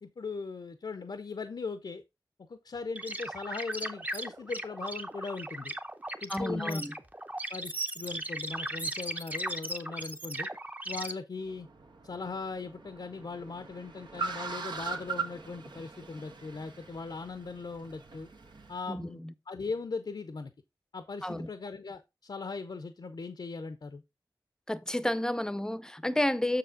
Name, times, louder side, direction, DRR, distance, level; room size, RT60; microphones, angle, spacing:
voice 1, 0.0-2.0 2.5-5.7 6.2-6.8 7.5-10.5 10.9-11.7 12.0-18.3 18.7-19.2 19.5-20.5 20.9-24.0, left 4 dB, 70° left, 0.7 m, -39 dB
sound 1, 2.9-11.1, right 1 dB, 20° right, 0.8 m, -37 dB
voice 2, 6.3-6.9 18.9-19.3 21.2-21.5 24.7-26.6, left 1 dB, 10° left, 0.6 m, -31 dB
Car, 11.4-18.8, right 4 dB, 80° right, 1.4 m, -41 dB
6.8 x 6.5 x 3.7 m
wide cardioid pair, 75°, 8 cm